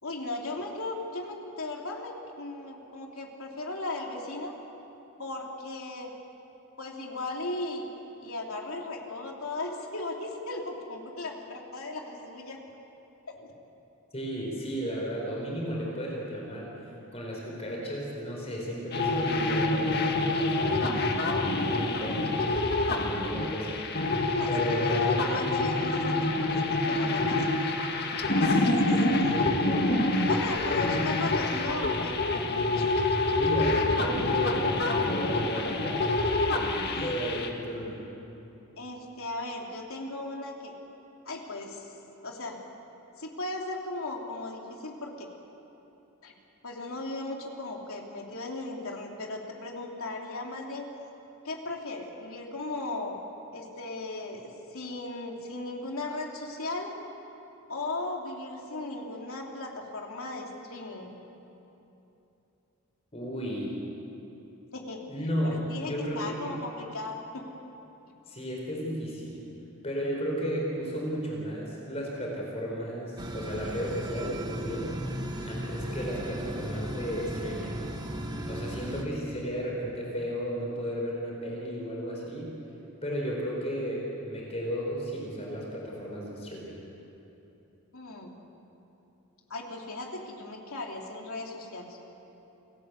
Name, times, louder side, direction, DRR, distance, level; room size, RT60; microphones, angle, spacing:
voice 1, 0.0-4.5 5.2-6.1 6.8-7.9 8.2-12.6 13.3-13.5 24.3-27.5 28.3-29.2 30.3-32.2 32.7-32.9 36.9-37.3 38.8-40.7 41.2-41.9 42.2-42.6 43.2-45.3 46.2-46.3 46.6-50.9 51.4-53.2 53.5-56.9 57.7-61.1 64.7-65.0 65.4-67.5 87.9-88.3 89.5-92.0, left 2 dB, 70° left, 0 dB, 3.3 m, -37 dB
voice 2, 14.1-16.7 17.1-20.8 21.5-22.4 22.8-23.8 24.5-25.3 28.4-30.0 30.7-31.2 33.4-36.1 37.0-38.0 63.1-63.7 65.1-66.5 68.3-69.4 69.8-75.0 75.4-77.8 78.5-82.5 83.0-86.8, equal, 30° left, -2 dB, 4.5 m, -34 dB
sound 1, 18.9-37.5, left 2 dB, 45° left, 1.9 m, -27 dB
sound 2, 73.2-79.0, right 1 dB, 20° right, 1.5 m, -36 dB
29.0 x 18.0 x 8.3 m, 3.0 s
head